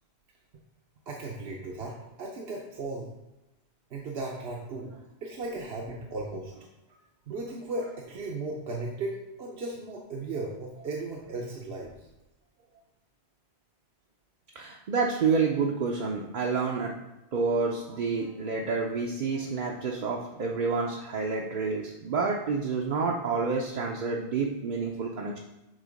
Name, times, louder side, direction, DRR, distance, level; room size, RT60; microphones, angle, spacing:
voice 1, 1.1-3.1 3.9-4.9 5.2-6.5 7.3-11.9, right 2 dB, 70° right, -2 dB, 1.0 m, -36 dB
voice 2, 14.5-16.9 17.3-25.4, right 4 dB, 50° right, -1 dB, 0.7 m, -29 dB
7.5 x 3.0 x 5.1 m, 0.97 s
omnidirectional pair, 1.1 m